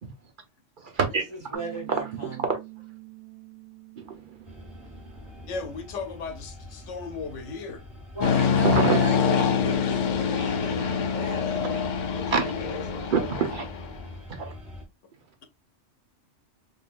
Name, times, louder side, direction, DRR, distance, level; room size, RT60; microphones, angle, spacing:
voice 1, 0.0-0.3 0.8-1.2 2.1-2.6 4.0-5.5 8.6-9.0 12.3-12.4 13.1-13.6 14.3-14.5, right 5 dB, 50° right, 0.9 m, -28 dB
voice 2, 1.5-2.3 8.1-13.5, right 2 dB, 25° right, 1.3 m, -36 dB
Bass guitar, 1.5-7.8, right 21 dB, 80° right, 1.0 m, -47 dB
sound 1, 4.5-14.8, left 2 dB, ahead, 1.5 m, -44 dB
voice 3, 5.5-7.8, left 4 dB, 85° left, 1.0 m, -36 dB
sound 2, 8.2-14.0, left 7 dB, 55° left, 0.5 m, -25 dB
3.8 x 3.4 x 2.4 m
omnidirectional pair, 1.2 m